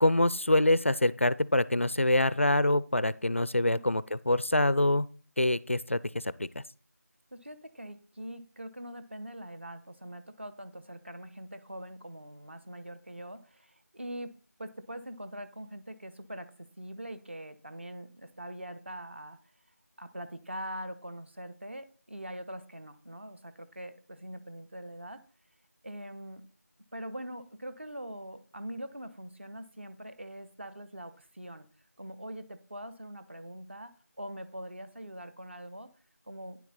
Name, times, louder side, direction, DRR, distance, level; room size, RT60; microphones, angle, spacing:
voice 1, 0.0-5.1 5.4-6.6, left 1 dB, 50° left, 18 dB, 0.4 m, -25 dB
voice 2, 7.3-14.3 14.6-19.4 20.0-25.2 25.8-26.4 26.9-31.7 32.0-35.9 36.2-36.6, right 1 dB, 45° right, 9 dB, 1.1 m, -43 dB
9.6 x 7.5 x 4.0 m, 0.39 s
figure-of-eight pair, 175°, 9 cm